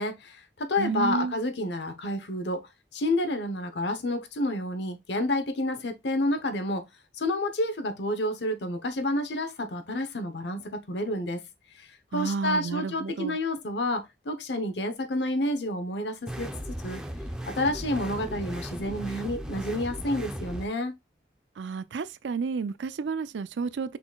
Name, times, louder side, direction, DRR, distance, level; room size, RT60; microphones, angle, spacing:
voice 1, 0.0-2.6 2.9-6.8 7.2-11.4 11.8-16.5 16.8-17.0 17.4-21.0, left 1 dB, 75° left, 0.9 m, -29 dB
voice 2, 0.8-1.3 12.1-13.4 21.6-24.0, right 5 dB, 85° right, 0.4 m, -31 dB
sound 1, 16.3-20.7, equal, 5° right, 0.6 m, -36 dB
5.7 x 4.0 x 2.3 m
head